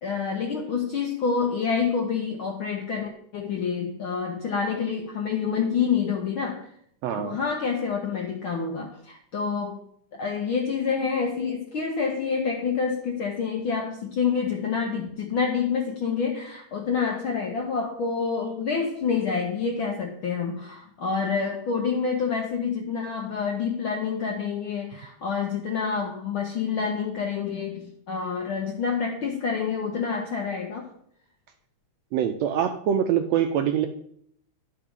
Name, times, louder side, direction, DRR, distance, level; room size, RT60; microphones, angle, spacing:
voice 1, 0.0-6.7 7.1-9.8 10.1-30.9, left 6 dB, 70° left, 1 dB, 1.2 m, -27 dB
voice 2, 7.0-7.4 32.1-33.9, right 9 dB, 80° right, 6 dB, 1.5 m, -24 dB
11.0 x 4.9 x 5.2 m, 0.67 s
omnidirectional pair, 3.4 m